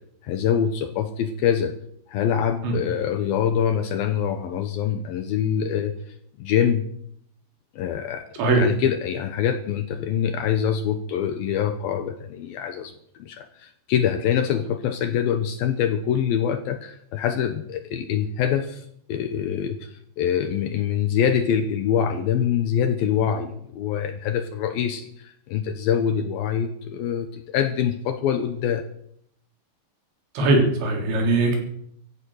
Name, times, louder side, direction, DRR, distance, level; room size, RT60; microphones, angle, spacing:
voice 1, 0.2-1.8 2.1-5.9 6.4-6.8 7.8-8.3 8.6-12.9 13.2-28.8, left 8 dB, 70° left, 9 dB, 2.4 m, -24 dB
voice 2, 30.4-31.6, right 2 dB, 80° right, 1 dB, 5.7 m, -20 dB
15.5 x 13.5 x 6.4 m, 0.70 s
omnidirectional pair, 5.2 m